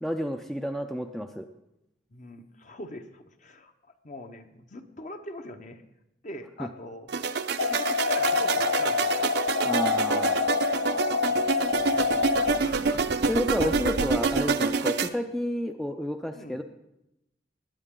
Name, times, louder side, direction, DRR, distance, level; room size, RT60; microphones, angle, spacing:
voice 1, 0.0-1.5 6.6-6.7 9.6-10.4 13.3-16.6, equal, ahead, 6 dB, 0.5 m, -30 dB
voice 2, 2.1-5.8 6.2-7.1 7.6-9.2 11.3-13.3 13.6-13.8 16.3-16.6, left 2 dB, 40° left, 7 dB, 1.0 m, -43 dB
sound 1, 7.1-15.1, right 4 dB, 60° right, 0.6 m, -27 dB
sound 2, 7.6-12.6, left 5 dB, 60° left, 0.4 m, -27 dB
20.5 x 8.9 x 3.8 m, 0.87 s
head